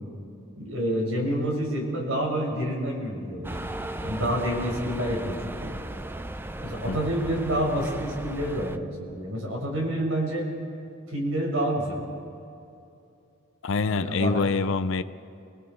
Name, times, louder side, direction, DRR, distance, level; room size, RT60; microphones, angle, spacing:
voice 1, 0.6-3.6 4.0-5.7 6.6-8.9 9.1-10.5 11.1-12.0 13.9-14.4, equal, 85° right, -1 dB, 5.7 m, -28 dB
sound 1, 3.4-8.8, right 1 dB, 10° right, 0.5 m, -36 dB
voice 2, 13.6-15.0, left 4 dB, 70° left, 11 dB, 0.5 m, -25 dB
29.0 x 20.0 x 4.5 m, 2.6 s
head